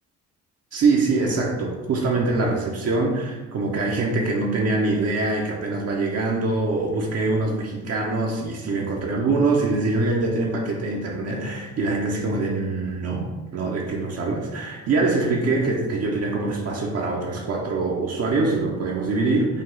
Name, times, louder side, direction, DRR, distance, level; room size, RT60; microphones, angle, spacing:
voice 1, 0.7-19.6, right 3 dB, 55° right, -1 dB, 0.8 m, -24 dB
5.2 x 2.3 x 3.7 m, 1.2 s
cardioid pair, 90°, 30 cm